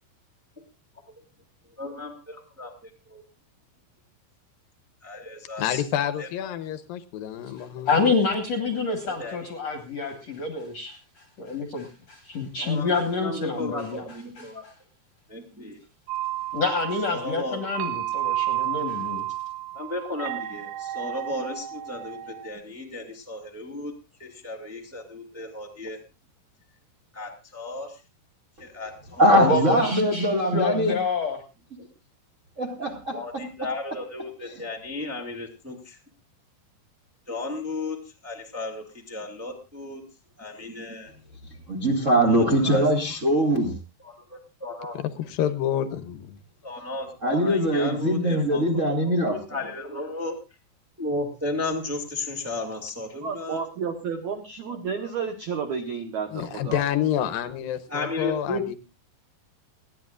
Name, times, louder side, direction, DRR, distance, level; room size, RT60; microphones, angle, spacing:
voice 1, 1.8-2.1 2.6-3.2 5.0-5.8 6.2-6.3 9.0-9.5 12.6-14.6 15.3-15.8 17.1-17.7 19.7-23.9 24.2-26.0 27.1-28.0 28.6-29.5 30.2-30.4 31.8-31.9 33.1-36.0 37.3-38.0 38.2-40.0 40.4-41.1 42.3-43.4 44.0-45.0 46.6-50.3 51.0-53.6 55.0-55.1 57.9-58.7, left 2 dB, 15° right, 1 dB, 0.5 m, -34 dB
voice 2, 5.6-8.0 45.0-46.4 56.3-58.8, left 10 dB, 75° left, 12 dB, 2.4 m, -28 dB
voice 3, 7.6-14.0 14.4-14.7 16.5-19.2 29.3-31.4, left 4 dB, 55° left, 4 dB, 2.0 m, -27 dB
sound 1, 16.1-22.5, right 13 dB, 80° right, 3.2 m, -31 dB
voice 4, 29.2-30.9 32.6-33.1 41.7-43.8 47.2-49.3, right 1 dB, 30° right, -1 dB, 1.4 m, -22 dB
voice 5, 53.2-56.8, right 6 dB, 65° right, 5 dB, 2.0 m, -31 dB
29.5 x 10.5 x 2.5 m, 0.28 s
omnidirectional pair, 4.7 m